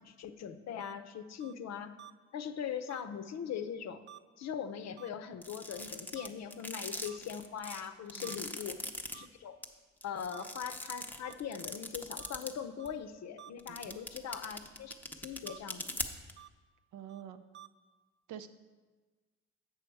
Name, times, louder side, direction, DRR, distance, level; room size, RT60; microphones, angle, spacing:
voice 1, 0.0-1.9 2.3-4.0 4.4-8.8 9.1-9.6 10.0-15.8, left 8 dB, 60° left, 10 dB, 0.6 m, -41 dB
sound 1, 0.8-0.9 1.4-1.5 2.0-2.1 2.9-3.0 4.1-4.2 5.0-5.1 5.7-5.8 6.2-6.3 7.1-7.2 7.7-7.8 8.2-8.4 9.1-9.3 10.3-10.4 11.2-11.4 12.2-12.3 12.8-12.9 13.4-13.5 14.3-14.4 15.5-15.6 16.4-16.5 17.1-17.2 17.5-17.7, right 12 dB, 40° right, 0.4 m, -51 dB
sound 2, 5.4-9.1 9.6-9.7 10.0-12.5 12.8-12.9 13.6-16.3, left 1 dB, 5° left, 0.7 m, -40 dB
voice 2, 13.7-14.0 16.9-17.4 18.3-18.5, right 9 dB, 80° right, 9 dB, 0.6 m, -47 dB
8.2 x 6.3 x 4.6 m, 1.3 s
cardioid pair, 90°, 30 cm